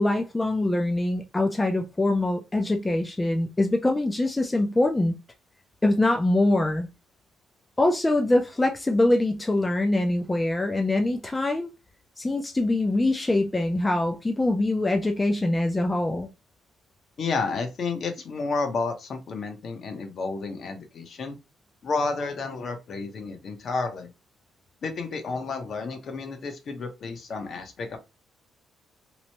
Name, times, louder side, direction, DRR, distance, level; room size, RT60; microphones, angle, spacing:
voice 1, 0.0-5.1 5.8-6.9 7.8-11.7 12.2-16.3, left 2 dB, 15° left, 0.4 m, -24 dB
voice 2, 17.2-21.4 21.8-24.1 24.8-28.0, left 4 dB, 55° left, 0.8 m, -31 dB
2.9 x 2.1 x 2.8 m
cardioid pair, 90°, 0 cm